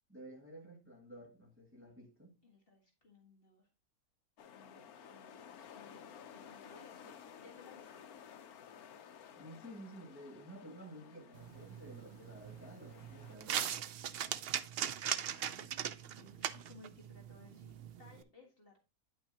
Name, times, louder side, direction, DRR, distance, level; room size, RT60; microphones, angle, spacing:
voice 1, 0.1-2.4 9.4-13.8, equal, 10° right, 1.9 m, -52 dB
voice 2, 2.4-3.7 4.5-7.1 7.4-8.0 14.1-14.7 15.1-15.7 16.1-18.8, left 3 dB, 40° left, 1.9 m, -61 dB
sound 1, 4.4-13.4, left 8 dB, 80° left, 1.3 m, -55 dB
sound 2, 11.3-18.2, right 9 dB, 70° right, 0.5 m, -40 dB
9.7 x 6.0 x 2.8 m
omnidirectional pair, 1.6 m